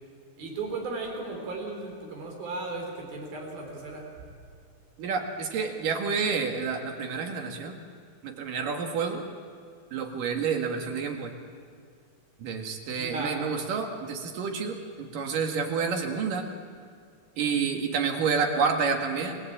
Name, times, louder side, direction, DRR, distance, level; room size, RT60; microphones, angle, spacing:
voice 1, 0.4-4.1 13.0-13.4, right 3 dB, 90° right, 1 dB, 5.9 m, -35 dB
voice 2, 5.0-7.8 8.2-9.2 9.9-11.3 12.4-16.5 17.4-19.4, right 5 dB, 70° right, 4 dB, 3.5 m, -29 dB
29.5 x 18.5 x 8.7 m, 2.2 s
omnidirectional pair, 4.1 m